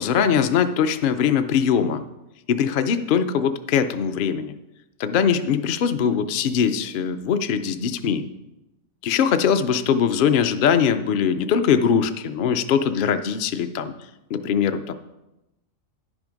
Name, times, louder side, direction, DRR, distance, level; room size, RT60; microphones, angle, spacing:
voice 1, 0.0-2.0 2.5-4.5 5.0-8.2 9.0-13.9 14.3-14.9, left 7 dB, 60° left, 9 dB, 0.5 m, -21 dB
10.5 x 6.1 x 5.1 m, 0.94 s
omnidirectional pair, 1.4 m